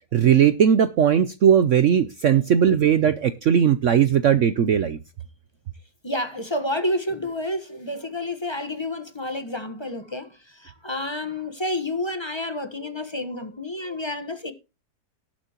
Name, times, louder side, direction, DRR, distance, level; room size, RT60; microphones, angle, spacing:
voice 1, 0.1-5.0, right 8 dB, 60° right, 0.9 m, -18 dB
voice 2, 6.0-14.5, left 1 dB, 20° left, 1.1 m, -29 dB
19.0 x 7.4 x 3.0 m
omnidirectional pair, 1.7 m